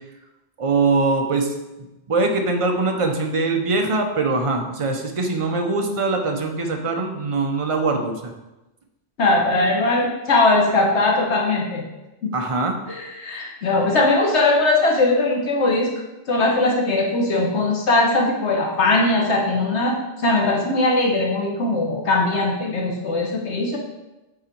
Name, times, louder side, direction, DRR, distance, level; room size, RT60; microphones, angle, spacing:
voice 1, 0.6-1.5 2.1-8.3 12.3-12.8, right 3 dB, 35° right, 3 dB, 0.7 m, -22 dB
voice 2, 9.2-11.8 12.2-12.3 12.9-15.9 16.3-23.8, left 2 dB, 70° left, 0 dB, 1.2 m, -20 dB
7.5 x 4.0 x 4.5 m, 1.0 s
omnidirectional pair, 1.2 m